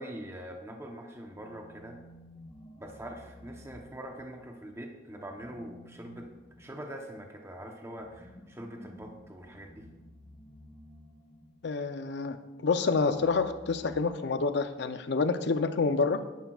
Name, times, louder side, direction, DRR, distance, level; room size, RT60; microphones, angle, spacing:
voice 1, 0.0-2.0 2.8-6.3 6.6-9.9, right 1 dB, 15° right, 2 dB, 0.9 m, -43 dB
sound 1, 1.2-4.5 5.2-11.8 12.8-14.7, left 1 dB, 15° left, 2.0 m, -54 dB
voice 2, 11.6-12.4 12.6-16.2, left 4 dB, 65° left, 10 dB, 0.6 m, -28 dB
11.5 x 10.5 x 2.4 m, 1.1 s
head